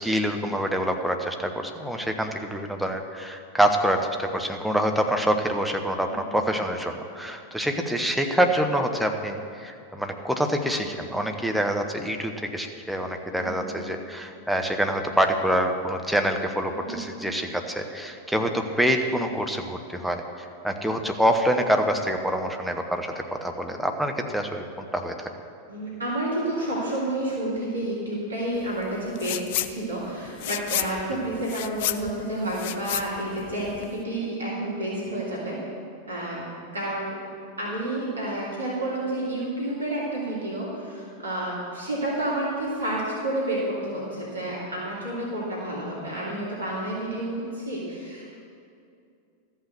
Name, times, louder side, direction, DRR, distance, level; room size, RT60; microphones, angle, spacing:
voice 1, 0.0-20.2 20.6-25.3, equal, ahead, 3 dB, 0.9 m, -26 dB
voice 2, 6.1-6.4 13.4-13.9 16.8-17.0 25.7-35.6 36.1-37.2 37.6-48.3, right 1 dB, 75° right, -6 dB, 2.9 m, -30 dB
sound 1, 29.2-29.7 30.0-34.0, left 14 dB, 50° left, 0.4 m, -31 dB
13.5 x 5.6 x 6.8 m, 2.5 s
figure-of-eight pair, 90°, 0 cm